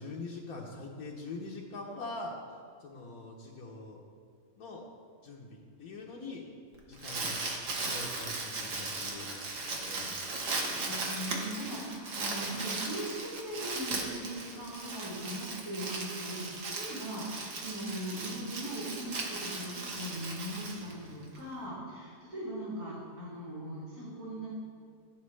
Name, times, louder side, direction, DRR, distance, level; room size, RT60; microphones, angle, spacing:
voice 1, 0.0-4.0 4.6-4.8 5.2-6.4 6.9-7.4 7.8-10.2, left 2 dB, 75° left, -3 dB, 1.2 m, -43 dB
Crumpling crinkling, 6.7-21.4, right 3 dB, 60° right, 1.3 m, -37 dB
voice 2, 10.2-24.5, right 1 dB, 90° right, -10 dB, 2.8 m, -40 dB
10.5 x 7.2 x 3.1 m, 2.1 s
omnidirectional pair, 1.6 m